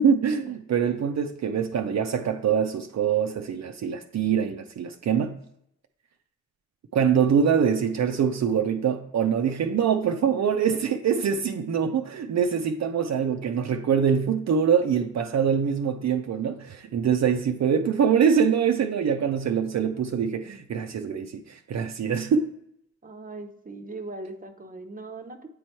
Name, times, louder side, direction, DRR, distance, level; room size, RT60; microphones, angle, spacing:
voice 1, 0.0-5.4 6.9-22.5, right 7 dB, 65° right, 0.5 m, -24 dB
voice 2, 23.0-25.5, right 2 dB, 30° right, 0.7 m, -39 dB
8.3 x 3.1 x 4.4 m
cardioid pair, 75°, 30 cm